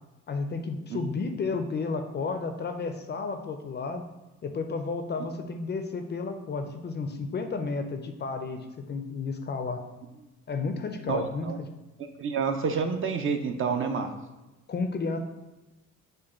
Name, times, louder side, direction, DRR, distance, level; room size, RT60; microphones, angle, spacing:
voice 1, 0.3-4.0 4.4-9.8 10.5-11.7 14.7-15.2, left 4 dB, 35° left, 7 dB, 0.4 m, -32 dB
voice 2, 11.1-11.6 12.2-14.1, right 5 dB, 45° right, 6 dB, 0.5 m, -28 dB
5.1 x 2.2 x 4.2 m, 1.1 s
cardioid pair, 90°, 30 cm